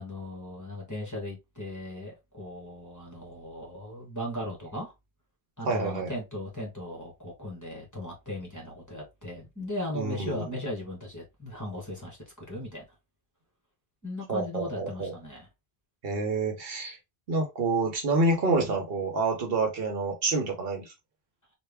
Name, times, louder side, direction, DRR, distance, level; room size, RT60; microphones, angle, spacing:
voice 1, 0.0-4.9 5.6-12.8 14.0-15.5, left 1 dB, 15° left, 1.3 m, -37 dB
voice 2, 5.7-6.1 9.9-10.5 14.3-15.1 16.0-17.0 17.3-20.9, right 3 dB, 65° right, 1.0 m, -28 dB
3.3 x 2.5 x 3.3 m
omnidirectional pair, 1.1 m